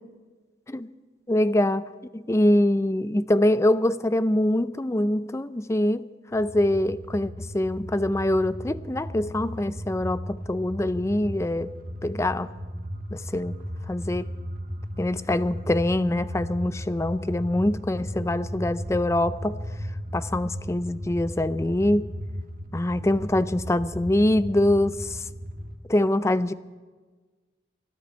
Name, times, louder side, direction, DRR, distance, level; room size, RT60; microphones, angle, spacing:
voice 1, 1.3-11.7 12.0-12.5 13.1-13.6 13.9-14.3 15.0-19.6 20.1-22.1 22.7-25.2 25.9-26.5, left 1 dB, 15° left, 0.4 m, -24 dB
sound 1, 6.3-25.7, equal, 50° right, 1.6 m, -36 dB
23.5 x 12.5 x 4.4 m
head